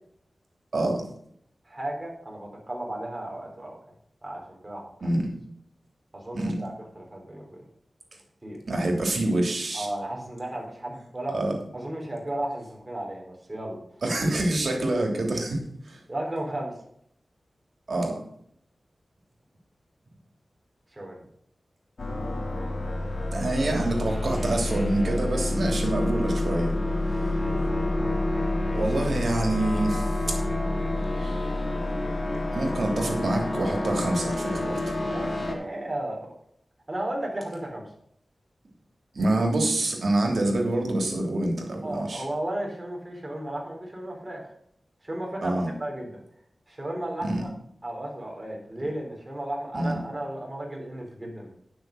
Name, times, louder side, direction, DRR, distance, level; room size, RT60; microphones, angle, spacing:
voice 1, 0.7-1.0 5.0-5.3 6.3-6.6 8.7-9.9 11.3-11.5 14.0-16.0 17.9-18.2 23.3-26.7 28.7-30.4 31.1-31.6 32.5-34.9 39.1-42.2 45.4-45.7 47.2-47.4 49.7-50.0, right 1 dB, 70° right, 2 dB, 3.0 m, -26 dB
voice 2, 1.7-3.8 4.2-4.9 6.1-7.6 8.4-8.6 9.7-11.4 11.7-13.8 16.1-16.7 20.9-21.2 27.0-28.1 35.0-36.3 36.9-37.8 41.8-44.5 45.0-46.2 46.7-47.5 47.8-51.5, right 1 dB, 25° right, -1 dB, 3.7 m, -34 dB
sound 1, 22.0-35.5, left 2 dB, 50° left, 2.3 m, -28 dB
10.5 x 6.3 x 6.4 m, 0.69 s
wide cardioid pair, 75°, 0 cm